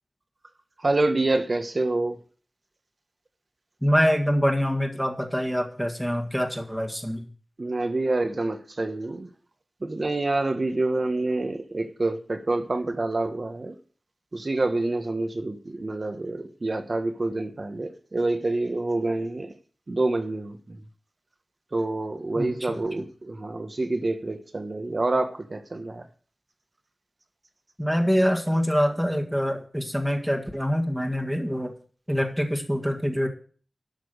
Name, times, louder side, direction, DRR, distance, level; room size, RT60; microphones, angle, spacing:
voice 1, 0.8-2.2 7.6-9.3 9.8-13.8 14.3-19.5 19.9-20.8 21.7-26.1, right 2 dB, 50° right, 1.3 m, -27 dB
voice 2, 3.8-7.3 22.4-22.8 27.8-31.7 32.1-33.3, equal, ahead, 1.8 m, -25 dB
12.0 x 6.1 x 6.6 m
wide cardioid pair, 85°, 0 cm